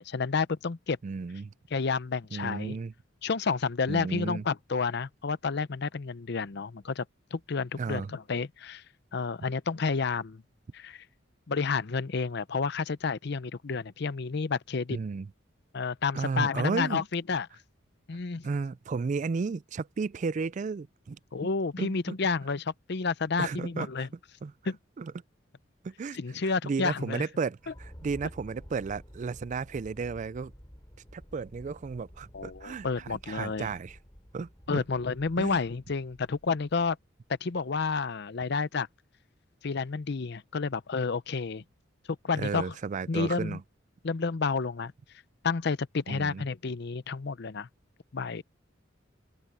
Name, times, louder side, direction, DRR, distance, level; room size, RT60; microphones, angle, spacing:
voice 1, 0.0-1.0 1.7-2.8 3.2-7.0 7.3-8.8 9.1-10.4 10.7-11.0 11.5-15.0 15.7-17.5 18.1-18.5 21.3-24.1 24.7-24.8 26.1-27.3 32.3-33.7 34.7-37.0 37.4-38.9 39.6-41.6 42.2-42.7 43.1-43.6 44.0-44.9 45.4-47.7 48.1-48.4, left 4 dB, 55° left, 0.6 m, -30 dB
voice 2, 1.0-1.5 2.3-2.9 3.9-4.4 7.8-8.1 14.9-15.3 16.1-17.0 18.4-21.2 21.8-21.9 23.4-24.1 24.4-24.5 25.0-25.1 25.8-26.2 26.4-30.5 31.1-34.0 34.3-34.8 35.4-35.6 42.4-43.6 46.1-46.4, right 4 dB, 40° right, 0.3 m, -33 dB
sound 1, 27.6-37.2, equal, 20° left, 6.7 m, -51 dB
open air
head